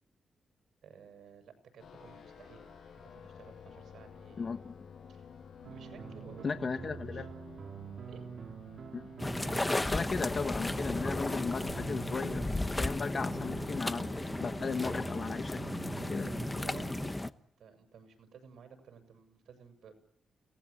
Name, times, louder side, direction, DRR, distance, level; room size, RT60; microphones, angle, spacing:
voice 1, 0.8-2.7 3.0-4.5 5.1-5.3 5.7-7.3 8.1-8.3 16.0-19.9, right 6 dB, 75° right, 8 dB, 7.1 m, -55 dB
sound 1, 1.8-15.2, left 6 dB, 75° left, 7.7 m, -53 dB
voice 2, 4.4-4.7 6.4-7.3 8.9-9.1 9.8-12.5 12.8-14.1 14.4-15.6 16.1-16.3, left 5 dB, 40° left, 7 dB, 1.5 m, -36 dB
sound 2, 5.6-17.1, right 6 dB, 55° right, 3.8 m, -46 dB
sound 3, 9.2-17.3, left 2 dB, 15° left, 1.1 m, -34 dB
29.5 x 20.0 x 8.7 m, 0.71 s
wide cardioid pair, 125°, 0 cm